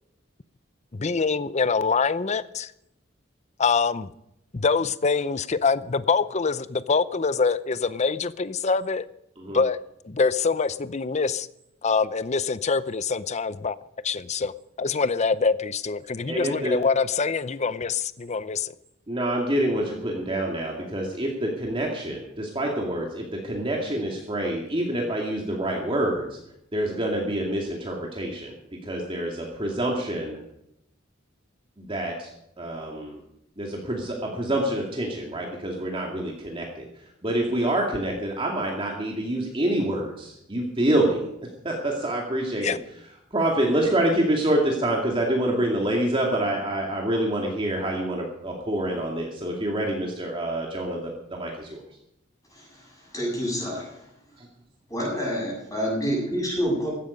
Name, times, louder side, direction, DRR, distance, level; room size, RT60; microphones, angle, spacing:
voice 1, 0.9-2.7 3.6-4.1 4.5-9.1 9.5-11.5 11.8-13.8 14.0-14.5 14.8-18.7 42.6-42.8, left 4 dB, 35° left, 16 dB, 0.6 m, -25 dB
voice 2, 16.3-16.8 19.1-26.4 26.7-28.5 28.8-30.4 31.8-32.3 32.6-33.2 33.6-36.8 37.2-41.3 41.6-42.8 43.3-51.8 54.4-54.5, right 1 dB, 25° right, -1 dB, 2.4 m, -26 dB
voice 3, 52.5-54.0 54.9-56.9, equal, 15° left, -3 dB, 7.5 m, -28 dB
16.0 x 12.5 x 5.2 m, 0.80 s
head